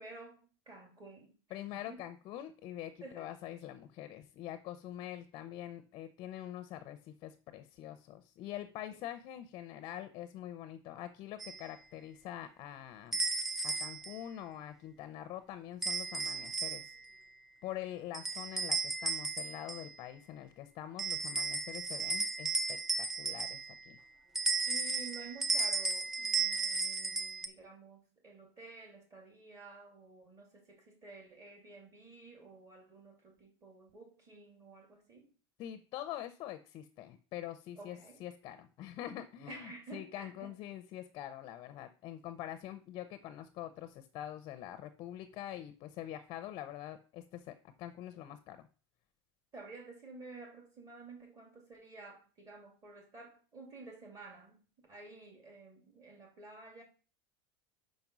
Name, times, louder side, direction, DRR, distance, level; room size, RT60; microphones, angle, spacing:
voice 1, 0.0-2.0 3.0-3.3 8.9-9.0 24.7-35.3 37.8-38.2 39.5-40.5 49.5-54.6 54.9-56.8, right 3 dB, 25° right, 2.4 m, -52 dB
voice 2, 1.5-13.2 13.6-16.9 17.6-24.0 35.6-48.6, left 12 dB, 35° left, 0.6 m, -45 dB
sound 1, 11.4-11.6 13.1-14.2 15.8-17.1 18.1-19.9 21.0-23.9 24.4-27.5, right 3 dB, 5° right, 0.4 m, -34 dB
5.3 x 5.3 x 6.0 m
supercardioid pair, 150°, 13 cm